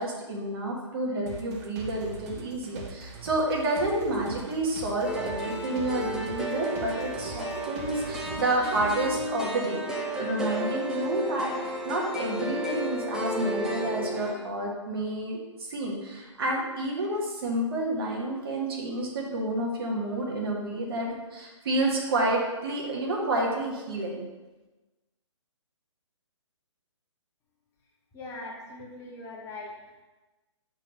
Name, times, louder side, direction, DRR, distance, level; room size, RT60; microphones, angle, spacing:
voice 1, 0.0-11.5 11.8-24.3, right 1 dB, 50° right, -1 dB, 1.7 m, -29 dB
sound 1, 1.3-9.3, right 5 dB, 30° right, 0.9 m, -43 dB
sound 2, 5.0-14.4, equal, 5° right, 0.7 m, -33 dB
voice 2, 28.1-30.0, left 2 dB, 15° left, -3 dB, 1.1 m, -41 dB
6.3 x 4.0 x 5.4 m, 1.2 s
figure-of-eight pair, 130°, 16 cm